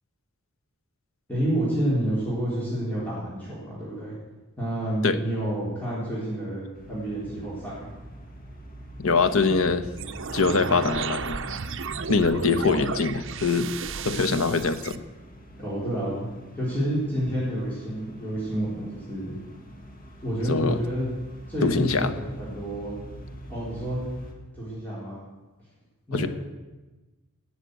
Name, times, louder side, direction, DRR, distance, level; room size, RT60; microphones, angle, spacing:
voice 1, 1.3-4.2 4.6-7.9 15.6-16.2 16.6-19.4 20.2-21.1 21.5-23.0 23.5-24.1 24.5-25.2 26.1-26.3, right 1 dB, 10° left, -9 dB, 3.8 m, -29 dB
sound 1, 6.7-24.3, equal, 45° left, 2.2 m, -44 dB
voice 2, 9.0-9.9 10.3-11.4 12.1-13.7 14.0-15.0 20.5-20.8 21.6-22.1 26.1-26.3, left 4 dB, 80° left, 11 dB, 0.9 m, -23 dB
sound 2, 10.0-15.0, right 5 dB, 65° right, 0.8 m, -33 dB
18.0 x 6.7 x 8.0 m, 1.2 s
head